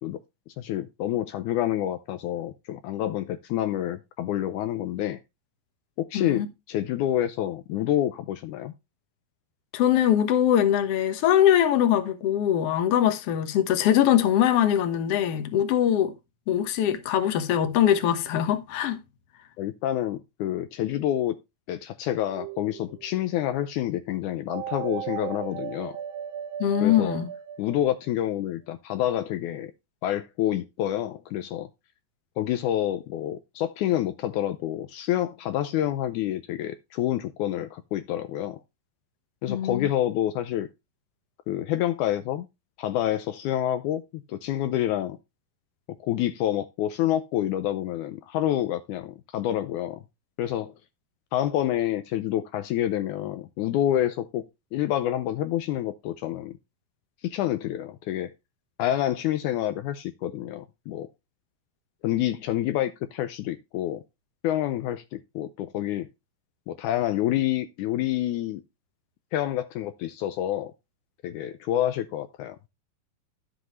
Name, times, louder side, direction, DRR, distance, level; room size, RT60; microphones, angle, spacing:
voice 1, 0.6-5.2 6.0-8.7 19.6-21.3 21.7-26.0 26.8-27.2 27.6-29.7 30.0-31.7 32.4-38.6 39.4-40.7 41.5-42.5 42.8-45.2 46.0-50.0 50.4-50.7 51.3-54.4 54.7-56.6 57.2-58.3 58.8-61.1 62.0-64.0 64.4-66.1 66.7-68.6 69.3-70.7 71.2-72.6, left 12 dB, 90° left, 1.7 m, -28 dB
voice 2, 6.1-6.5 9.7-16.1 16.5-19.0 26.6-27.3 39.5-39.9, left 10 dB, 65° left, 1.5 m, -22 dB
sound 1, 22.3-23.1 24.5-28.3, right 10 dB, 80° right, 2.5 m, -36 dB
11.5 x 7.8 x 3.1 m
omnidirectional pair, 4.3 m